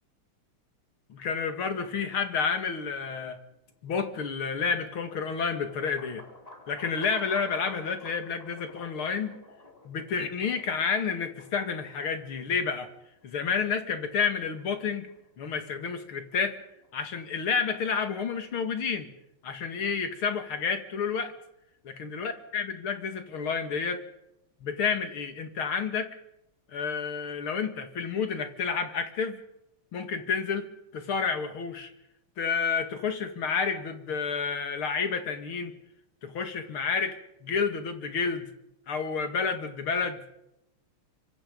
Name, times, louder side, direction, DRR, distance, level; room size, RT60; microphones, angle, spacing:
voice 1, 1.1-3.4 3.8-6.2 6.7-9.3 9.9-12.9 13.2-16.6 16.9-19.1 19.4-21.3 22.0-24.0 24.6-26.2 26.7-29.4 29.9-31.9 32.4-35.7 36.2-38.5 38.9-40.2, left 5 dB, 75° left, 8 dB, 3.0 m, -30 dB
sound 1, 3.5-17.6, left 2 dB, 15° left, 4.6 m, -52 dB
26.0 x 24.5 x 5.3 m, 0.84 s
omnidirectional pair, 2.4 m